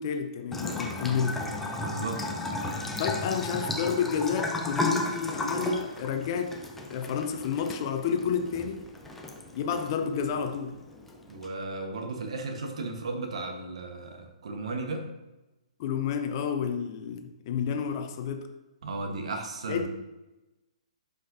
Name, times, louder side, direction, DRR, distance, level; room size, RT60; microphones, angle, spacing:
voice 1, 0.0-1.4 3.0-6.6 6.9-8.9 9.5-10.8 15.8-18.5 19.7-19.9, left 7 dB, 40° left, 6 dB, 0.8 m, -30 dB
Bathtub (filling or washing) / Trickle dribble, 0.5-11.5, left 2 dB, 5° left, 0.8 m, -34 dB
voice 2, 1.8-2.5 11.3-15.1 18.8-19.9, right 3 dB, 60° right, 4 dB, 1.2 m, -35 dB
11.5 x 5.2 x 2.7 m, 1.0 s
figure-of-eight pair, 125°, 4 cm